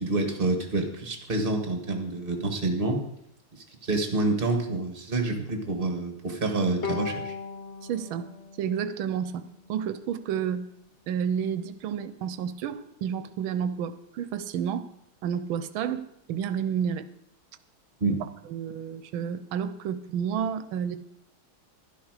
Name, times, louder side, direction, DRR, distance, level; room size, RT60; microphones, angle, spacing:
voice 1, 0.0-3.0 3.5-7.3 18.0-18.2, right 2 dB, 30° right, 4 dB, 1.7 m, -28 dB
Bowed string instrument, 6.8-10.2, left 5 dB, 40° left, 1.1 m, -38 dB
voice 2, 7.8-8.3 8.6-10.7 11.1-14.9 15.2-17.1 18.1-18.2 18.5-21.0, right 8 dB, 85° right, 12 dB, 1.5 m, -30 dB
11.5 x 11.5 x 4.9 m, 0.77 s
omnidirectional pair, 2.2 m